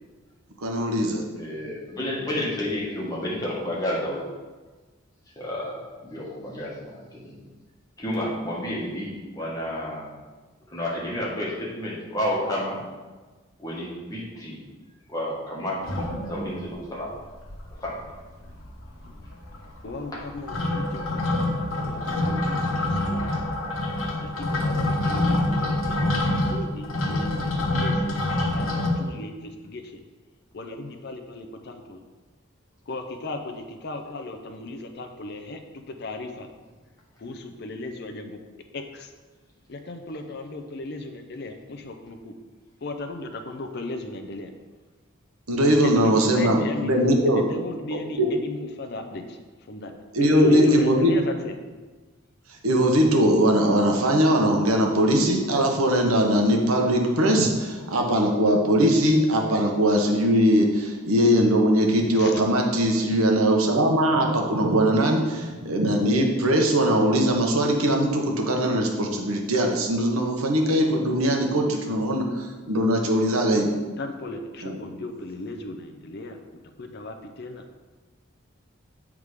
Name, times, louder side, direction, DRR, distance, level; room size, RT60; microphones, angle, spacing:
voice 1, 0.6-1.3 45.5-47.4 47.9-48.3 50.1-51.1 52.6-73.7 74.6-74.8, equal, 85° right, 1 dB, 1.1 m, -21 dB
voice 2, 1.4-4.2 5.4-7.3 8.0-10.1 10.7-12.8 13.6-14.6 15.1-17.1 17.8-17.9 21.8-21.9, left 1 dB, 15° left, -5 dB, 1.5 m, -31 dB
sound 1, 15.8-16.7 17.1-17.2 17.4-18.1 18.3-28.9, left 1 dB, 75° left, 1.3 m, -26 dB
voice 3, 19.8-23.4 24.2-26.1 26.4-28.2 28.5-30.0 30.5-32.0 32.9-36.5 37.2-38.4 38.7-39.1 39.7-42.3 42.8-44.5 46.0-46.9 47.3-49.4 49.7-49.9 50.2-51.5 62.2-62.4 74.0-76.4 76.8-77.6, left 2 dB, 50° left, 6 dB, 0.5 m, -36 dB
8.1 x 3.7 x 4.8 m, 1.3 s
head